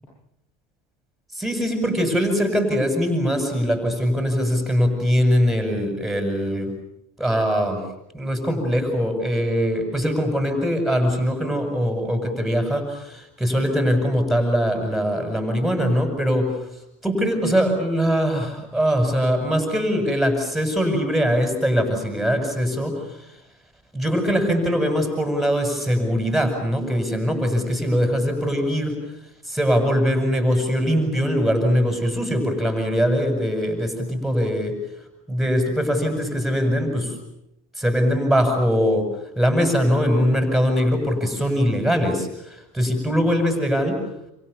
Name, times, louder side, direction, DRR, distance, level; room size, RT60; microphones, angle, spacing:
voice 1, 1.3-6.7 7.2-7.8 8.1-16.6 17.0-23.3 23.9-29.0 29.4-34.8 35.3-37.1 37.7-39.1 39.4-44.0, equal, ahead, 5 dB, 7.7 m, -22 dB
28.5 x 28.0 x 7.0 m, 0.83 s
supercardioid pair, 105°, 17 cm